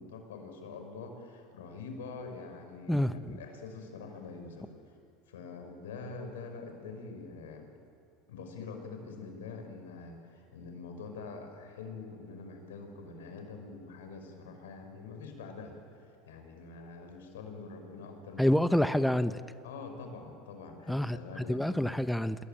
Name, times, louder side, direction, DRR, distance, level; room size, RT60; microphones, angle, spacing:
voice 1, 0.0-5.0 5.3-7.7 8.3-18.6 19.6-22.0, left 4 dB, 90° left, 5 dB, 5.5 m, -45 dB
voice 2, 18.4-19.4 20.9-22.4, left 1 dB, 5° left, 11 dB, 0.9 m, -27 dB
27.0 x 21.5 x 9.1 m, 2.4 s
hypercardioid pair, 95°, 0 cm